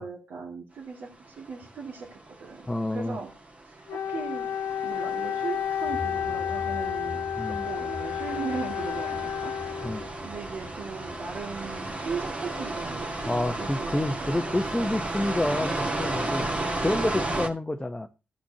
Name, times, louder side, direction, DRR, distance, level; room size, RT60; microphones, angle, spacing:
voice 1, 0.0-3.3 3.6-4.5 4.8-14.4, right 5 dB, 70° right, 2.2 m, -38 dB
sound 1, 1.4-17.5, right 2 dB, 35° right, 1.8 m, -34 dB
voice 2, 2.7-3.2 7.4-7.6 9.8-10.0 13.2-16.5 16.8-18.1, left 1 dB, 10° left, 0.8 m, -28 dB
Wind instrument woodwind instrument, 3.9-10.3, left 8 dB, 75° left, 0.6 m, -31 dB
sound 2, 5.9-12.8, left 2 dB, 45° left, 1.3 m, -44 dB
15.5 x 6.0 x 2.8 m
cardioid pair, 65°, 4 cm